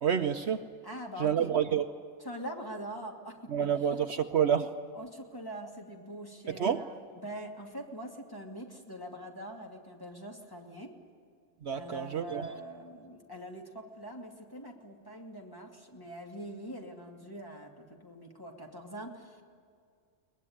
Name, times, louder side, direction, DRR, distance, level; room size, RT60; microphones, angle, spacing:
voice 1, 0.0-0.7 1.2-1.9 3.5-4.8 6.5-6.8 11.6-12.4, right 8 dB, 60° right, 8 dB, 1.0 m, -28 dB
voice 2, 0.8-1.5 2.2-3.9 4.1-4.3 4.9-11.0 11.7-19.4, right 1 dB, 15° left, 1 dB, 2.6 m, -43 dB
22.5 x 20.0 x 9.6 m, 2.2 s
omnidirectional pair, 1.3 m